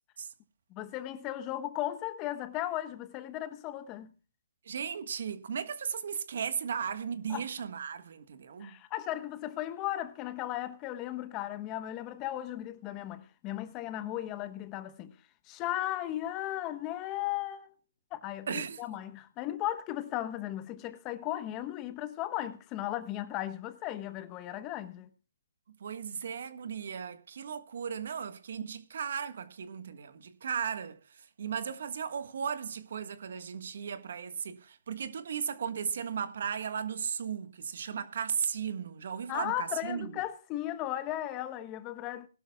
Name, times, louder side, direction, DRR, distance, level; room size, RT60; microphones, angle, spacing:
voice 1, 0.7-4.1 7.3-7.5 8.6-15.1 15.5-17.7 18.1-25.1 39.3-42.3, left 13 dB, 25° left, 1.0 m, -36 dB
voice 2, 4.6-8.7 18.5-18.8 25.8-40.1, right 7 dB, 60° right, 1.5 m, -36 dB
20.5 x 12.0 x 2.3 m
hypercardioid pair, 145°, 0 cm